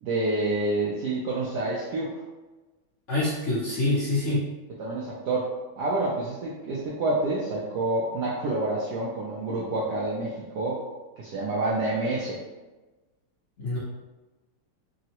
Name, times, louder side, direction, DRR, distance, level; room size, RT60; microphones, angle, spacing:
voice 1, 0.0-2.1 4.8-5.5 5.8-10.8 11.2-12.4, right 2 dB, 75° right, -6 dB, 1.0 m, -28 dB
voice 2, 3.1-4.4 13.6-13.8, left 2 dB, 65° left, -9 dB, 0.8 m, -25 dB
3.6 x 2.0 x 2.8 m, 1.2 s
omnidirectional pair, 2.2 m